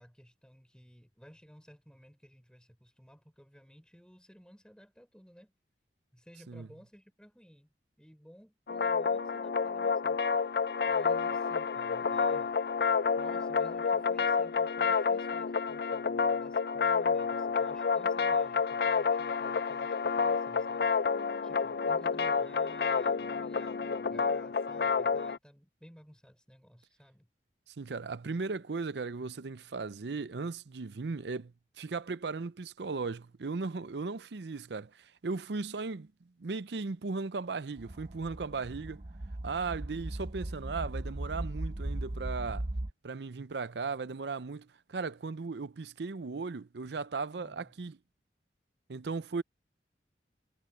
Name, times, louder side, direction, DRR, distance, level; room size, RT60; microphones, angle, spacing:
voice 1, 0.0-5.5 6.1-10.2 10.8-12.5 13.2-27.3 47.3-47.7, equal, 5° left, 5.6 m, -56 dB
sound 1, 8.7-25.4, left 5 dB, 60° left, 0.5 m, -29 dB
voice 2, 27.7-36.1 36.4-39.0 39.4-42.7 43.0-48.0 48.9-49.4, right 4 dB, 75° right, 0.6 m, -37 dB
sound 2, 37.8-42.9, right 1 dB, 35° right, 0.7 m, -38 dB
head